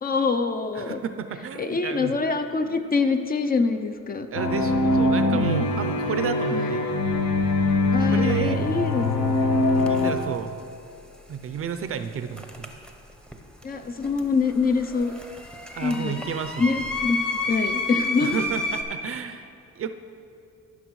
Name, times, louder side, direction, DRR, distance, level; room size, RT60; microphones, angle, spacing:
voice 1, 0.0-1.0 1.6-4.3 5.3-5.4 5.8-5.9 6.5-6.7 7.9-9.1 13.6-15.1 15.8-16.2 16.6-17.2 17.5-18.4, left 4 dB, 30° left, 8 dB, 0.5 m, -25 dB
voice 2, 0.7-2.2 4.3-6.9 8.0-8.6 9.9-10.5 11.3-12.7 15.7-16.8 18.2-19.9, right 7 dB, 50° right, 9 dB, 0.5 m, -32 dB
sound 1, 4.3-10.1, left 2 dB, 65° left, 1.1 m, -23 dB
sound 2, 8.3-8.5 9.7-10.3 12.4-13.3 13.6-18.8, left 2 dB, 5° left, 0.8 m, -31 dB
14.5 x 5.9 x 3.1 m, 2.4 s
cardioid pair, 90°, 30 cm